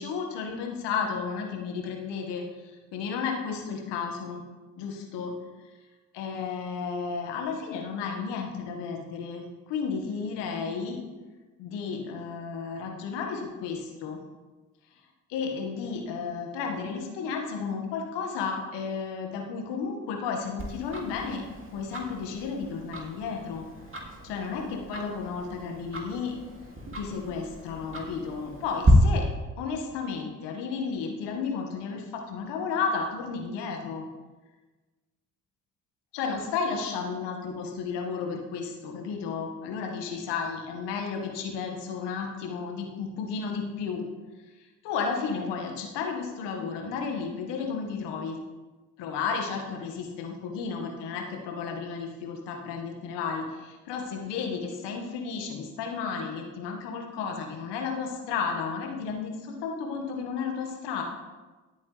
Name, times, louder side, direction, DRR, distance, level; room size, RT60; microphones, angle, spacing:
voice 1, 0.0-2.4 2.9-4.4 4.8-5.3 6.1-11.0 11.6-14.2 15.3-21.4 21.7-23.6 24.2-26.4 27.0-29.3 29.6-34.0 36.1-44.0 44.8-48.4 49.0-61.0, left 5 dB, 75° left, 2 dB, 2.0 m, -33 dB
Tick-tock, 20.6-28.9, right 2 dB, 30° right, 2.9 m, -34 dB
17.5 x 8.4 x 3.5 m, 1.3 s
hypercardioid pair, 50°, 42 cm